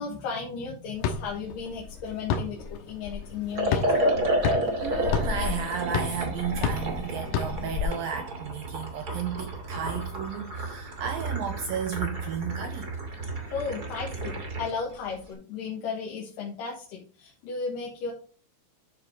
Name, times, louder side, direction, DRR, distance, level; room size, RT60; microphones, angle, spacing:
voice 1, 0.0-4.1 13.4-18.1, left 5 dB, 60° left, 2.9 m, -35 dB
sound 1, 1.0-7.9, left 6 dB, 80° left, 3.1 m, -31 dB
Liquid, 3.5-14.7, right 1 dB, 35° right, 1.6 m, -31 dB
voice 2, 4.8-12.9, right 7 dB, 80° right, 2.1 m, -33 dB
12.5 x 4.5 x 3.8 m
omnidirectional pair, 4.8 m